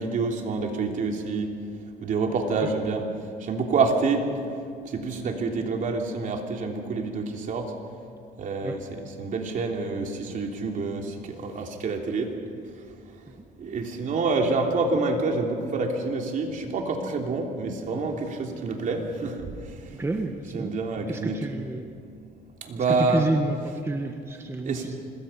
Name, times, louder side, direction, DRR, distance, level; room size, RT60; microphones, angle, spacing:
voice 1, 0.0-1.5 2.0-3.0 3.4-4.2 4.8-7.7 8.4-12.3 13.6-19.7 20.5-21.4 22.6-23.2 24.6-25.0, right 3 dB, 50° right, 2 dB, 3.3 m, -27 dB
voice 2, 19.9-20.8 21.1-21.9 22.8-25.0, right 2 dB, 15° right, 4 dB, 1.3 m, -29 dB
25.5 x 21.0 x 5.8 m, 2.3 s
cardioid pair, 110°, 17 cm